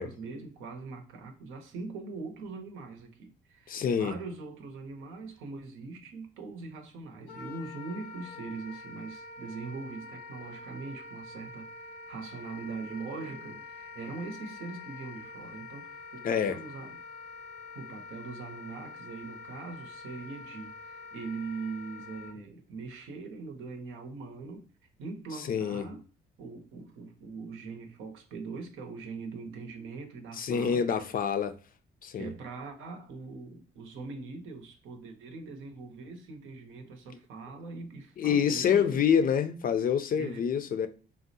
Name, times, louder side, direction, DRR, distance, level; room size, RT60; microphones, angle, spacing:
voice 1, 0.0-17.0 17.7-24.6 25.0-26.0 26.4-31.0 32.1-39.0 40.2-40.5, right 4 dB, 85° right, 0.7 m, -42 dB
voice 2, 3.7-4.1 16.2-16.6 25.5-25.9 30.4-31.6 32.0-32.3 38.2-40.9, left 7 dB, 45° left, 0.4 m, -27 dB
Wind instrument woodwind instrument, 7.3-22.3, left 4 dB, 90° left, 0.6 m, -46 dB
3.6 x 2.0 x 2.6 m
cardioid pair, 90°, 20 cm